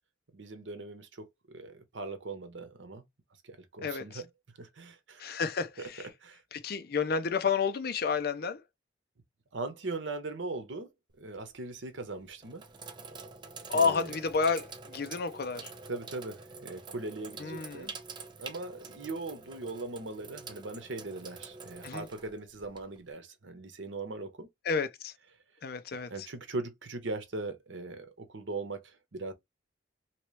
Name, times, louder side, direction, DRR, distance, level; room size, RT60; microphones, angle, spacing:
voice 1, 0.3-3.0 3.4-4.3 4.6-5.4 5.8-5.9 6.2-6.4 9.5-10.9 11.2-12.6 13.7-14.1 15.9-18.0 18.4-24.5 26.1-29.3, right 3 dB, 90° right, 0.9 m, -40 dB
voice 2, 3.8-4.2 5.2-6.1 6.5-8.6 13.7-15.7 17.4-17.9 21.8-22.1 24.6-25.1 25.6-26.1, left 5 dB, 55° left, 0.5 m, -30 dB
Sink (filling or washing), 11.1-11.5 12.2-23.1, right 4 dB, 25° right, 0.5 m, -46 dB
3.0 x 2.9 x 3.1 m
head